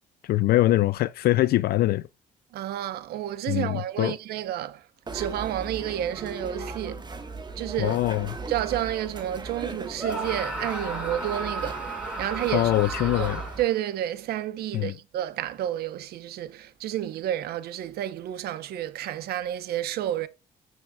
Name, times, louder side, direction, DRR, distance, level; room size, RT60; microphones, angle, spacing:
voice 1, 0.2-2.0 3.5-4.1 7.8-8.4 12.5-13.4 14.7-14.9, left 16 dB, 75° left, 0.4 m, -23 dB
voice 2, 2.5-4.8 5.1-7.0 7.6-8.0 8.5-12.7 13.0-13.3 13.6-20.3, right 12 dB, 85° right, 0.9 m, -30 dB
sound 1, 5.1-13.6, right 3 dB, 25° right, 1.4 m, -38 dB
Screaming, 10.0-13.8, right 2 dB, 10° right, 5.7 m, -34 dB
15.0 x 6.3 x 2.3 m
cardioid pair, 95°, 16 cm